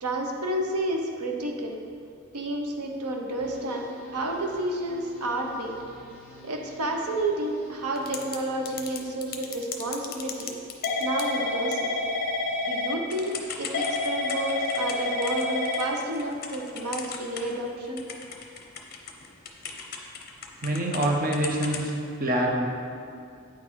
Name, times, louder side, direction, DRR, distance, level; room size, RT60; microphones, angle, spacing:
voice 1, 0.0-1.8 2.3-3.9 4.1-5.8 6.4-10.5 11.0-11.9 12.7-18.1, right 1 dB, 85° right, 1 dB, 0.8 m, -30 dB
sound 1, 3.4-9.1, left 2 dB, 10° right, 1.4 m, -48 dB
Typing / Telephone, 8.0-8.4 8.7-17.7 18.0-21.1 21.3-21.9, left 3 dB, 40° left, 0.6 m, -30 dB
voice 2, 20.6-21.9 22.2-22.7, right 1 dB, 40° right, 0 dB, 0.7 m, -25 dB
8.5 x 4.1 x 4.5 m, 2.4 s
head